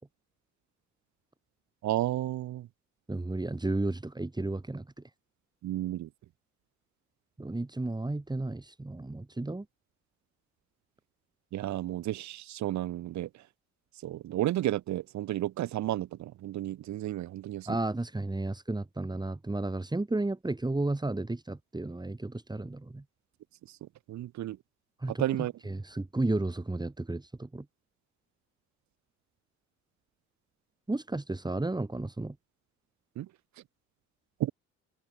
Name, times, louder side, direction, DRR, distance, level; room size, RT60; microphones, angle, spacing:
voice 1, 1.8-2.7 5.6-6.1 11.5-13.3 14.0-17.7 24.1-24.6 25.2-25.5 33.2-33.3 34.4-34.5, right 14 dB, 70° right, 0.9 m, -32 dB
voice 2, 3.1-4.9 7.4-9.6 17.7-23.0 25.0-25.2 25.6-27.6 30.9-32.3, right 2 dB, 15° right, 3.2 m, -33 dB
cardioid pair, 90°, 30 cm